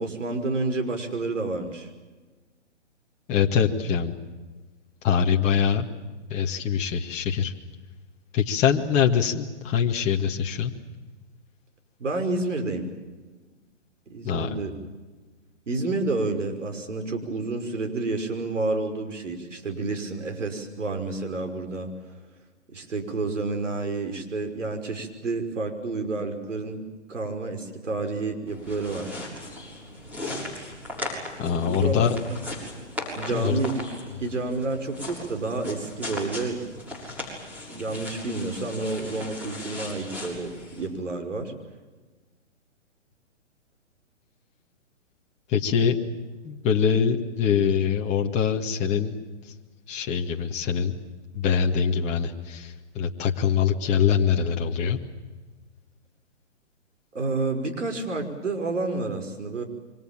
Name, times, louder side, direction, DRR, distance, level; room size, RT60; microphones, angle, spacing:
voice 1, 0.0-1.9 12.0-12.8 14.1-14.7 15.7-21.9 22.7-26.8 27.1-29.1 31.6-32.0 33.2-33.8 34.2-36.6 37.7-41.5 57.1-59.6, right 3 dB, 80° right, 6 dB, 5.8 m, -29 dB
voice 2, 3.3-4.1 5.0-5.9 6.3-7.5 8.3-10.7 14.2-14.6 31.4-32.2 33.3-33.6 45.5-46.0 46.4-49.2 49.9-51.0 51.3-55.0, left 7 dB, 20° left, 1 dB, 1.9 m, -23 dB
sound 1, 28.5-40.9, left 2 dB, 5° right, 6.7 m, -38 dB
28.0 x 25.0 x 7.5 m, 1.3 s
hypercardioid pair, 145°, 36 cm